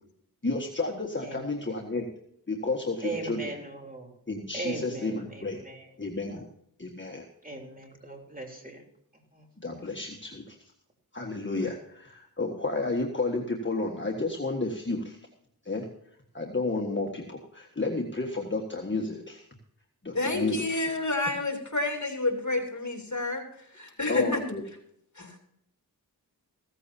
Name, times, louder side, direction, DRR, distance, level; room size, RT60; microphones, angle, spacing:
voice 1, 0.4-2.1 2.5-3.6 4.3-5.6 6.0-6.5 6.8-7.3 9.6-10.6 11.1-15.2 15.7-15.9 16.3-19.5 20.0-20.6 24.1-24.6, left 3 dB, 30° left, 0 dB, 1.6 m, -31 dB
voice 2, 3.0-4.1 4.5-5.9 7.4-8.8 9.3-9.4, right 2 dB, 20° right, 1 dB, 3.5 m, -38 dB
voice 3, 20.1-24.4 25.1-25.4, left 2 dB, 50° left, 2 dB, 3.1 m, -29 dB
15.5 x 14.5 x 2.8 m, 0.71 s
wide cardioid pair, 55°, 38 cm